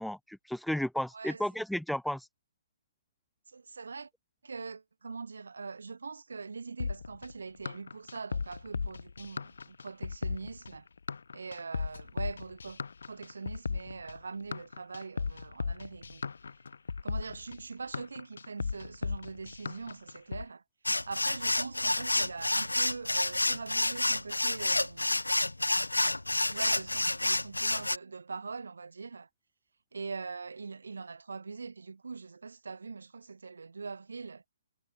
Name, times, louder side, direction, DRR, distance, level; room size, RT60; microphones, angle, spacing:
voice 1, 0.0-2.3, left 1 dB, ahead, 2.2 m, -33 dB
voice 2, 3.5-4.1 4.4-10.9 11.3-12.8 13.1-16.2 17.0-20.6 21.1-25.2 26.5-29.3 29.9-34.4, right 4 dB, 65° right, 3.7 m, -42 dB
sound 1, 6.8-20.4, left 5 dB, 65° left, 1.8 m, -36 dB
sound 2, 20.9-28.0, left 2 dB, 80° left, 0.8 m, -29 dB
figure-of-eight pair, 130°, 0 cm